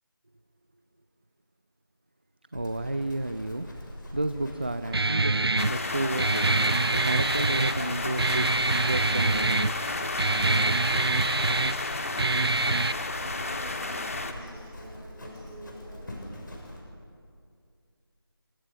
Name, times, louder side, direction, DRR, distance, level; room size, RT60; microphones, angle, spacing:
Livestock farm animals working animals, 2.5-16.8, left 1 dB, 50° left, 6.6 m, -44 dB
voice 1, 2.5-3.7 4.1-6.4 6.9-8.5 8.8-9.7, right 2 dB, 25° right, 11 dB, 0.5 m, -31 dB
Guitar, 4.9-12.9, right 3 dB, 75° right, 0.8 m, -25 dB
sound 1, 5.6-14.3, left 3 dB, 35° left, 1.7 m, -32 dB
voice 2, 13.1-16.1, right 1 dB, 5° right, -5 dB, 3.4 m, -48 dB
28.5 x 24.0 x 5.8 m, 2.3 s
figure-of-eight pair, 170°, 13 cm